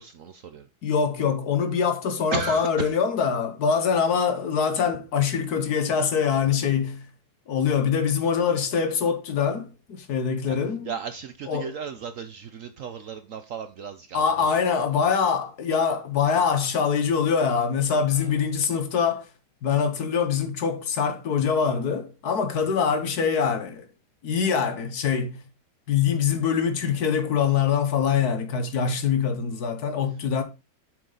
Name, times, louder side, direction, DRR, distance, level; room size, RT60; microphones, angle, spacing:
voice 1, 0.0-0.7 2.3-2.9 10.5-10.6 10.8-14.5 18.2-18.3, right 6 dB, 65° right, 0.8 m, -35 dB
voice 2, 0.8-7.1 7.5-10.9 11.5-11.7 14.1-19.3 19.6-23.9 24.2-25.4 25.9-30.4, left 6 dB, 65° left, 1.5 m, -24 dB
7.5 x 6.4 x 3.9 m
omnidirectional pair, 1.9 m